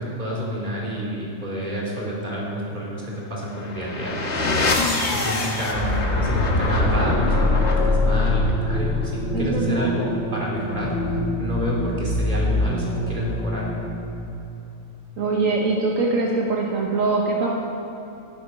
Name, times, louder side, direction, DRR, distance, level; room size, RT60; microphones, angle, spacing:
voice 1, 0.0-4.4 5.1-10.9 11.4-13.6, equal, 35° right, -4 dB, 3.2 m, -29 dB
sound 1, 3.5-14.2, left 2 dB, 55° left, 1.7 m, -23 dB
voice 2, 9.3-9.9 15.2-17.5, right 3 dB, 75° right, -1 dB, 1.5 m, -22 dB
13.5 x 11.0 x 5.7 m, 3.0 s
omnidirectional pair, 1.4 m